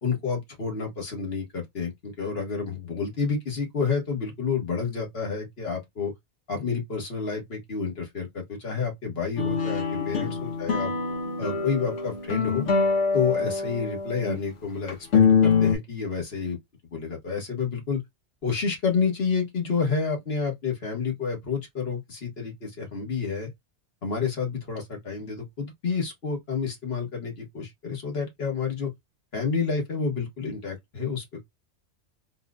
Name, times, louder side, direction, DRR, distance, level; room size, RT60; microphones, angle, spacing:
voice 1, 0.0-6.1 6.5-10.9 11.4-12.7 13.1-16.6 16.9-18.0 18.4-23.5 24.0-28.9 29.3-31.4, left 5 dB, 60° left, 1.6 m, -29 dB
sound 1, 9.4-14.4 14.9-15.8, left 5 dB, 85° left, 1.3 m, -24 dB
4.2 x 2.5 x 2.3 m
omnidirectional pair, 1.2 m